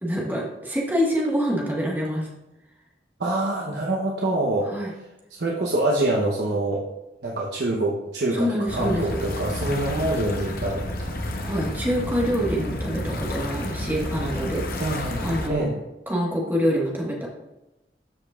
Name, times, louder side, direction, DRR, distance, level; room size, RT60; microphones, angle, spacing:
voice 1, 0.0-2.3 4.7-4.9 8.3-9.2 11.4-15.7 16.1-17.3, equal, 10° right, -3 dB, 1.5 m, -26 dB
voice 2, 3.2-4.7 5.4-6.8 7.2-8.5 8.7-11.1 14.8-15.8, right 1 dB, 70° right, -3 dB, 0.9 m, -25 dB
sound 1, 8.7-15.5, left 1 dB, 55° left, 0.9 m, -30 dB
13.0 x 5.1 x 2.4 m, 0.97 s
head